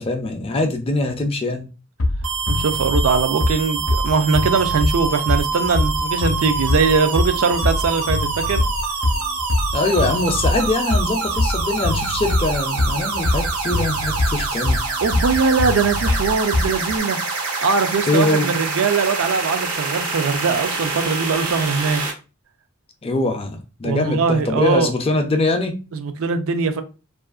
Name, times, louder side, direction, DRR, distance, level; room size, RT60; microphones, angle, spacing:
voice 1, 0.0-1.7 9.7-14.8 18.1-18.5 23.0-25.8, left 2 dB, 25° left, 0.4 m, -22 dB
Bass drum, 2.0-17.0, left 2 dB, 75° left, 0.6 m, -23 dB
sound 1, 2.2-22.1, right 4 dB, 90° right, 0.9 m, -26 dB
voice 2, 2.5-8.6 15.0-17.2 17.6-22.0 23.8-24.9 25.9-26.8, right 5 dB, 70° right, 0.4 m, -21 dB
2.7 x 2.4 x 2.3 m
head